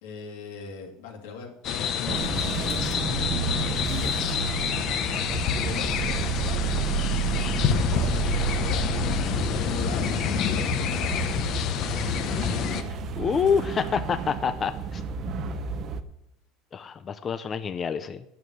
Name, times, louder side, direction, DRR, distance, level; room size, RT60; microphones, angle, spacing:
voice 1, 0.0-2.6 3.4-4.4 5.6-6.7 8.6-8.8 9.5-11.8, left 5 dB, 85° left, 2 dB, 2.6 m, -40 dB
sound 1, 1.6-12.8, left 8 dB, 45° left, 0.9 m, -27 dB
sound 2, 2.1-16.0, right 7 dB, 40° right, 0.7 m, -31 dB
voice 2, 13.2-15.0 16.7-18.2, left 6 dB, 25° left, 10 dB, 0.4 m, -27 dB
9.5 x 7.3 x 6.3 m, 0.83 s
cardioid pair, 155°, 0 cm